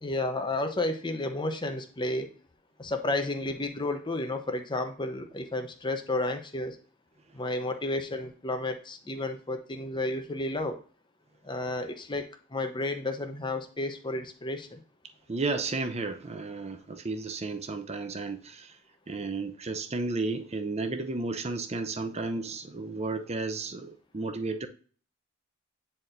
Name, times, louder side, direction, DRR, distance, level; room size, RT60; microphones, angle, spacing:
voice 1, 0.0-2.3 2.8-6.8 7.3-10.8 11.4-14.8, left 2 dB, 20° left, 0.8 m, -32 dB
voice 2, 15.3-18.8 19.1-24.7, right 3 dB, 30° right, 0.7 m, -33 dB
9.3 x 4.3 x 2.6 m
head